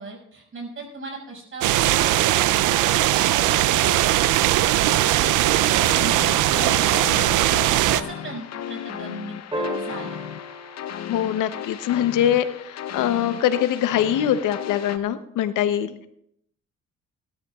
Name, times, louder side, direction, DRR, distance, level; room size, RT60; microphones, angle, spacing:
voice 1, 0.0-10.2, right 3 dB, 45° right, -1 dB, 5.8 m, -38 dB
sound 1, 1.6-8.0, right 14 dB, 85° right, 0.5 m, -19 dB
sound 2, 5.6-15.0, left 10 dB, 60° left, 0.8 m, -35 dB
sound 3, 9.5-12.0 14.3-14.4, left 1 dB, 15° right, 4.0 m, -34 dB
voice 2, 11.1-16.1, left 10 dB, 90° left, 11 dB, 0.8 m, -23 dB
20.0 x 13.0 x 2.4 m, 0.74 s
cardioid pair, 90°, 30 cm